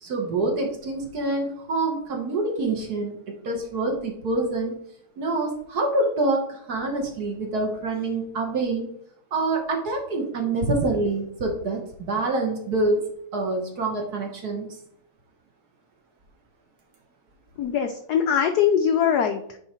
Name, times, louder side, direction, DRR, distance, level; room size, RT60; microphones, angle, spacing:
voice 1, 0.0-4.8 5.2-8.9 9.3-13.0 13.3-14.7, right 2 dB, 50° right, 1 dB, 1.6 m, -26 dB
voice 2, 17.6-19.6, left 8 dB, 75° left, 6 dB, 0.9 m, -22 dB
9.1 x 3.2 x 4.3 m, 0.69 s
omnidirectional pair, 2.3 m